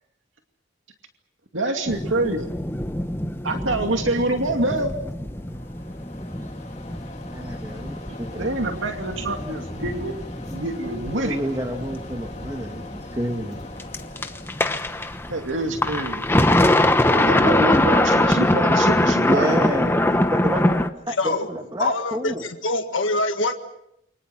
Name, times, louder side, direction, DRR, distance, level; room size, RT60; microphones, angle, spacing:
voice 1, 1.5-2.4 3.4-4.9 8.4-10.1 10.5-11.4 15.3-16.2 17.1-19.6, right 2 dB, 90° right, 4 dB, 2.5 m, -26 dB
sound 1, 1.9-20.9, left 1 dB, 10° left, 1.0 m, -23 dB
Mechanisms, 4.4-16.7, left 2 dB, 35° left, 2.6 m, -42 dB
voice 2, 7.2-8.5 11.2-13.6 19.3-22.4, equal, 20° right, 4 dB, 1.6 m, -29 dB
voice 3, 21.2-21.5 21.8-23.5, left 2 dB, 85° left, 5 dB, 1.7 m, -24 dB
29.0 x 24.5 x 6.0 m, 0.77 s
head